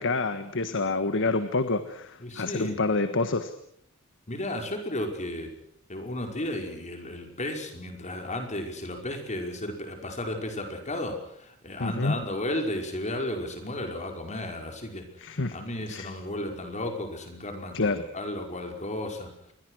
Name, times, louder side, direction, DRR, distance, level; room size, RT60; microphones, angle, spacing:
voice 1, 0.0-3.5 11.8-12.1 15.2-15.6 15.9-16.1 17.7-18.0, left 3 dB, 60° left, 10 dB, 1.6 m, -27 dB
voice 2, 2.2-2.8 4.3-5.5 5.9-19.3, left 1 dB, 35° left, 4 dB, 5.3 m, -34 dB
27.5 x 23.0 x 6.4 m, 0.69 s
head